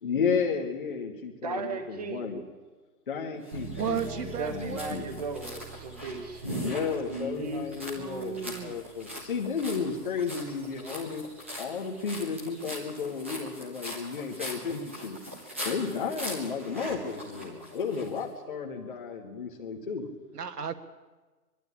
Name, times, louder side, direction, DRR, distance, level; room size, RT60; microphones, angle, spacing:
voice 1, 0.0-2.4 3.1-5.2 6.0-6.1 6.6-11.2 11.6-15.2 15.6-20.1, left 5 dB, 30° left, 0 dB, 1.5 m, -33 dB
voice 2, 1.4-2.4 4.4-6.4 7.1-7.7, right 3 dB, 25° right, 5 dB, 1.1 m, -36 dB
sound 1, 3.5-18.2, equal, 10° right, 0.8 m, -41 dB
sound 2, 3.5-14.1, right 6 dB, 85° right, 2.4 m, -48 dB
voice 3, 3.7-5.0 7.9-8.8 20.3-20.7, right 7 dB, 65° right, 10 dB, 1.6 m, -34 dB
23.5 x 12.0 x 9.8 m, 1.3 s
hypercardioid pair, 175°, 50 cm